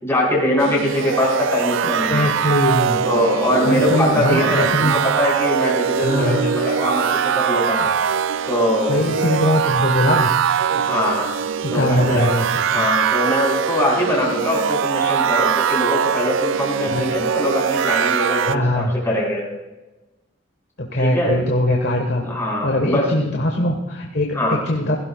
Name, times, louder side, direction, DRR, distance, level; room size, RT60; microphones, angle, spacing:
voice 1, 0.0-2.3 3.0-7.9 8.5-9.0 10.7-11.3 11.7-12.3 12.7-19.4 21.0-21.4 22.2-23.1 24.3-24.6, left 1 dB, 10° left, -4 dB, 4.8 m, -22 dB
sound 1, 0.6-18.6, right 7 dB, 60° right, 0.3 m, -22 dB
voice 2, 1.8-3.0 3.6-5.0 6.0-6.5 8.9-10.3 11.6-12.4 12.7-12.8 16.9-17.0 18.4-18.9 20.8-22.2 22.6-25.0, left 1 dB, 50° left, 2 dB, 1.4 m, -21 dB
17.0 x 15.5 x 2.4 m, 1.1 s
head